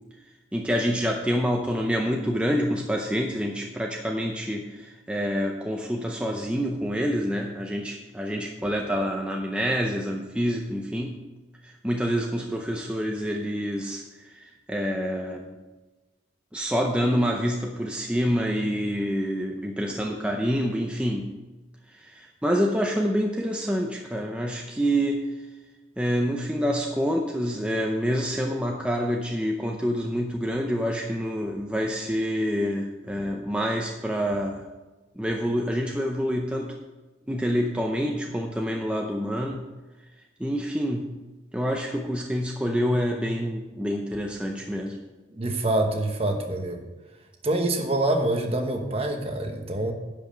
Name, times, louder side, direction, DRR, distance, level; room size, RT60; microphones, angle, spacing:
voice 1, 0.5-11.2 11.6-15.6 16.5-21.3 21.9-25.3 26.0-34.6 35.2-36.8 37.3-39.7 40.4-41.1 41.5-45.0, equal, 5° right, 1 dB, 0.5 m, -27 dB
voice 2, 45.3-46.8 47.4-49.9, right 1 dB, 30° right, 4 dB, 1.1 m, -26 dB
11.0 x 5.4 x 6.6 m, 1.2 s
head